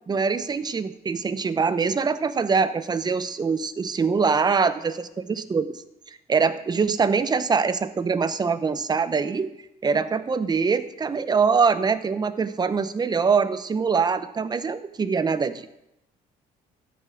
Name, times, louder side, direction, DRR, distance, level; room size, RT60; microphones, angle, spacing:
voice 1, 0.1-5.8 6.1-9.5 9.8-15.7, right 5 dB, 25° right, 13 dB, 0.7 m, -23 dB
13.0 x 6.8 x 5.0 m, 0.84 s
cardioid pair, 110°, 17 cm